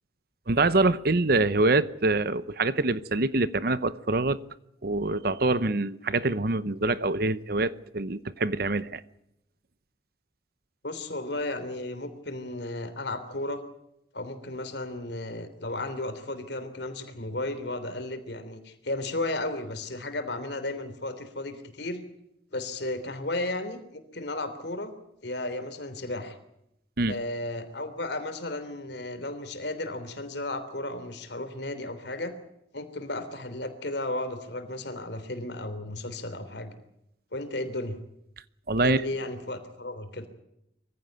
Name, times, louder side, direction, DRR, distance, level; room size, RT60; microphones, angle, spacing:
voice 1, 0.5-4.4 4.8-9.0 27.0-27.1 38.7-39.0, right 2 dB, 55° right, 0.8 m, -25 dB
voice 2, 10.8-13.6 14.1-22.0 22.5-24.9 25.2-26.4 27.1-32.3 32.7-36.7 37.3-38.0 38.8-40.3, left 2 dB, 65° left, 3.3 m, -34 dB
23.5 x 15.5 x 9.3 m
head